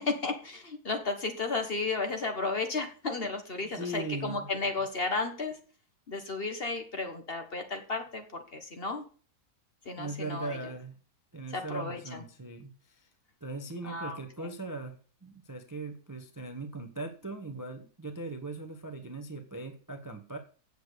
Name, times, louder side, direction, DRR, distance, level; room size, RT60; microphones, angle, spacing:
voice 1, 0.0-5.6 6.1-9.0 9.8-10.6 11.5-12.2 13.9-14.2, left 3 dB, 40° left, 5 dB, 1.4 m, -33 dB
voice 2, 3.6-4.5 9.9-10.9 11.3-13.1 13.4-14.9 15.2-20.4, right 2 dB, 15° right, 6 dB, 0.8 m, -39 dB
8.2 x 6.7 x 6.7 m, 0.39 s
omnidirectional pair, 1.7 m